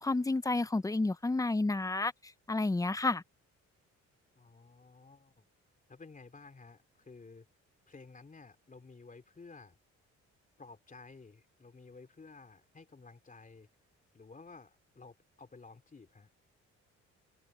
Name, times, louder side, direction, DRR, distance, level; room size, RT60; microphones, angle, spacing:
voice 1, 0.0-2.1 2.5-3.2, left 2 dB, 10° left, 0.8 m, -30 dB
voice 2, 4.3-5.5 5.9-7.5 7.9-9.8 10.6-13.7 14.1-16.3, left 4 dB, 25° left, 3.1 m, -54 dB
open air
cardioid pair, 90°, 30 cm